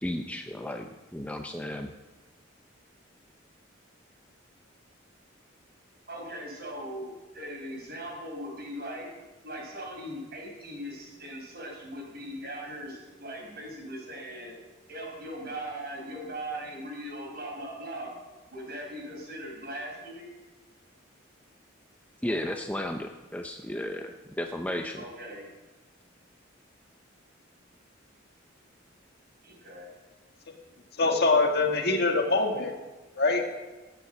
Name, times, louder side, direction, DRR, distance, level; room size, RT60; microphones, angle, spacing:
voice 1, 0.0-0.9 1.1-1.9 22.2-25.0, left 1 dB, 5° left, 4 dB, 0.6 m, -34 dB
voice 2, 6.1-9.1 9.4-14.6 14.9-18.2 18.5-20.3 25.0-25.5 29.4-29.9, right 1 dB, 50° right, -1 dB, 5.2 m, -39 dB
voice 3, 31.0-32.8 33.2-33.4, left 3 dB, 50° left, 3 dB, 1.8 m, -24 dB
15.0 x 8.4 x 7.9 m, 1.2 s
head